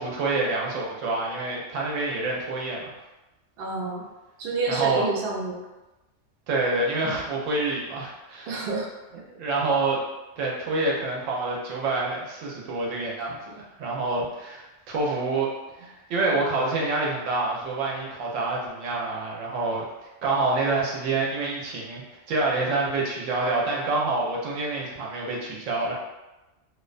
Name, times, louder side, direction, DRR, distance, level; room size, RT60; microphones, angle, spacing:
voice 1, 0.0-2.9 4.7-5.0 6.5-8.5 9.1-10.0 10.4-15.5 15.7-25.9, right 3 dB, 85° right, -3 dB, 1.0 m, -27 dB
voice 2, 3.6-4.0 4.4-5.6 8.5-8.9, right 3 dB, 65° right, -2 dB, 0.7 m, -28 dB
2.4 x 2.1 x 2.4 m, 1.0 s
omnidirectional pair, 1.3 m